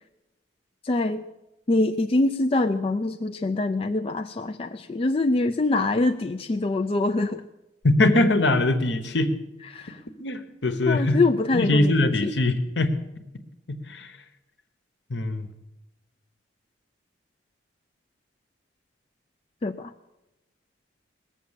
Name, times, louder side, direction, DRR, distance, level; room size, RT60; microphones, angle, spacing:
voice 1, 0.8-1.2 1.7-7.4 9.7-10.0 10.9-12.3 19.6-19.9, left 2 dB, 30° left, 6 dB, 0.4 m, -24 dB
voice 2, 7.8-9.3 10.2-11.2 11.5-13.0 13.7-14.2 15.1-15.5, left 2 dB, 65° left, 9 dB, 1.1 m, -22 dB
19.0 x 7.3 x 7.4 m, 0.95 s
head